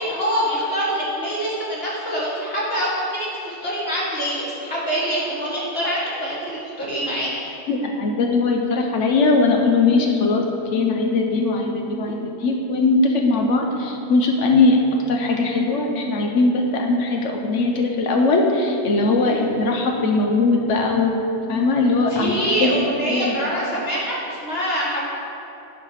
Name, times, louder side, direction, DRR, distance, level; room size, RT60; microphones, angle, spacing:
voice 1, 0.0-7.5 19.2-19.4 22.1-25.0, equal, 60° left, -7 dB, 1.7 m, -25 dB
voice 2, 7.7-21.2 21.5-23.3, left 3 dB, 90° left, 1 dB, 1.1 m, -20 dB
9.7 x 4.6 x 5.7 m, 2.9 s
omnidirectional pair, 1.2 m